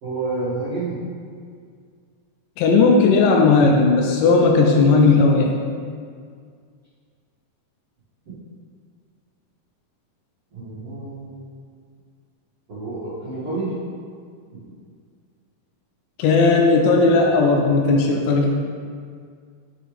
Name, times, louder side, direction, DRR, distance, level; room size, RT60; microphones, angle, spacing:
voice 1, 0.0-1.0 10.5-11.5 12.7-13.7 18.0-18.1, right 3 dB, 65° right, -15 dB, 1.5 m, -29 dB
voice 2, 2.6-5.5 16.2-18.5, left 3 dB, 85° left, 1 dB, 2.6 m, -16 dB
7.9 x 4.8 x 3.2 m, 2.1 s
omnidirectional pair, 5.7 m